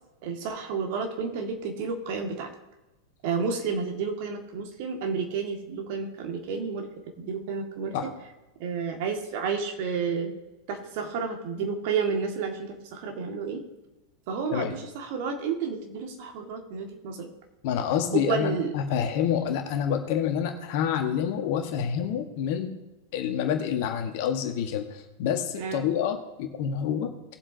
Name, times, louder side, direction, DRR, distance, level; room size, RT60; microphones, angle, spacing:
voice 1, 0.2-2.5 3.2-6.9 7.2-7.9 8.6-10.3 10.7-13.6 14.3-17.3 18.1-18.7 25.6-25.9, right 5 dB, 50° right, 3 dB, 2.0 m, -31 dB
voice 2, 17.6-22.7 23.1-27.1, left 8 dB, 50° left, 6 dB, 1.5 m, -28 dB
19.5 x 7.6 x 2.8 m, 1.0 s
figure-of-eight pair, 90°, 0 cm